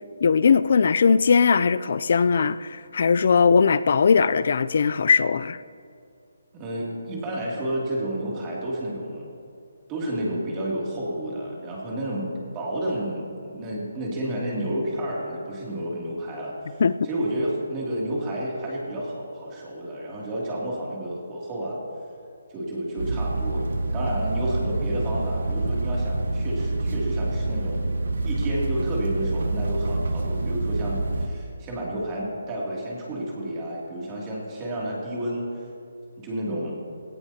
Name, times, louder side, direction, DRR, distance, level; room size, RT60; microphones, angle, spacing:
voice 1, 0.2-5.6 16.8-17.1, left 5 dB, 50° left, 15 dB, 0.4 m, -19 dB
voice 2, 6.5-9.3 9.9-12.3 12.5-21.8 22.5-23.6 23.9-27.8 28.2-35.5 36.2-36.8, right 1 dB, 15° right, -4 dB, 2.7 m, -30 dB
sound 1, 23.0-31.3, right 2 dB, 65° right, 1.3 m, -27 dB
18.0 x 17.0 x 2.9 m, 2.4 s
hypercardioid pair, 170°, 0 cm